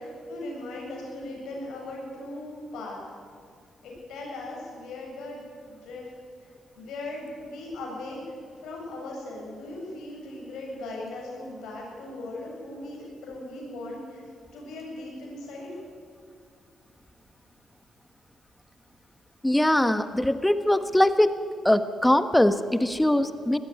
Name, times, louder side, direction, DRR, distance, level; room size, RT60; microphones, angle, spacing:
voice 1, 0.0-3.0 3.8-6.0 6.8-8.2 8.6-14.2 14.5-15.7, left 2 dB, 80° left, -2 dB, 7.5 m, -38 dB
voice 2, 19.4-21.4 21.6-23.6, left 1 dB, 10° left, 11 dB, 1.3 m, -22 dB
19.5 x 14.0 x 10.0 m, 2.2 s
cardioid pair, 65°, 0 cm